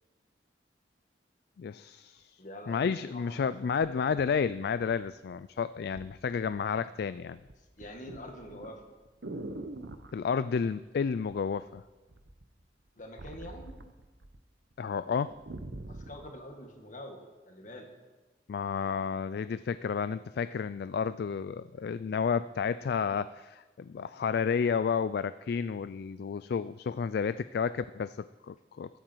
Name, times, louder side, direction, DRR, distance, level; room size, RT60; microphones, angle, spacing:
voice 1, 1.6-2.4 2.7-7.4 10.1-11.8 14.8-15.4 18.5-29.0, left 6 dB, 60° left, 14 dB, 0.3 m, -31 dB
voice 2, 2.4-3.5 7.8-8.8 12.9-13.7 15.9-17.9, left 1 dB, 45° left, 3 dB, 2.0 m, -45 dB
sound 1, 4.2-5.3 5.9-6.2 6.5-7.0 7.3-10.2 11.3-11.8 12.1-14.4 14.7-14.8 15.1-16.3 16.9-17.0, right 2 dB, 70° right, 0.9 m, -44 dB
21.5 x 8.9 x 4.6 m, 1.2 s
head